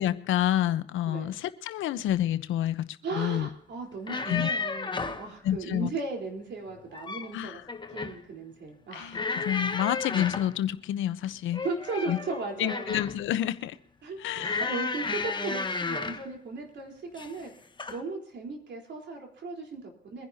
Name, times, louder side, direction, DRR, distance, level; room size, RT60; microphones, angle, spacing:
voice 1, 0.0-2.9 3.1-3.5 4.3-4.5 5.4-5.9 7.3-7.6 8.9-11.6 12.1-12.2 12.6-13.8 14.2-14.7, left 12 dB, 85° left, 0.9 m, -29 dB
voice 2, 3.0-7.6 7.9-9.2 11.6-12.9 14.0-17.5 17.9-20.3, right 3 dB, 65° right, 3.9 m, -36 dB
sound 1, 3.9-5.3 6.7-7.3 7.7-8.2 9.1-10.5 11.5-13.2 14.4-16.3 17.1-17.4 17.8-18.0, left 4 dB, 25° left, 1.1 m, -33 dB
24.0 x 10.5 x 2.8 m
cardioid pair, 90°, 20 cm